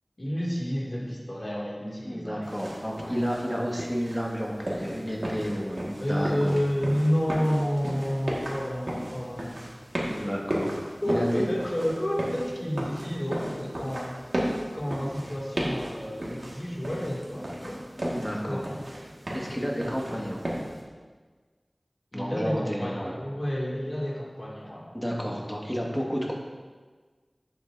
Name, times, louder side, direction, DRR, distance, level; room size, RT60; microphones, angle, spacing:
voice 1, 0.2-2.5 2.9-3.2 6.0-9.6 11.0-14.2 14.7-17.8 18.4-18.6 22.1-25.1, equal, 45° left, -4 dB, 2.4 m, -30 dB
voice 2, 2.0-6.6 10.1-10.7 11.0-11.4 18.0-18.6 19.3-20.4 22.1-23.2 24.9-26.3, equal, 5° left, -2 dB, 1.8 m, -31 dB
sound 1, 2.4-20.8, equal, 70° right, 1.8 m, -35 dB
11.5 x 8.0 x 2.7 m, 1.4 s
wide cardioid pair, 40°, 0 cm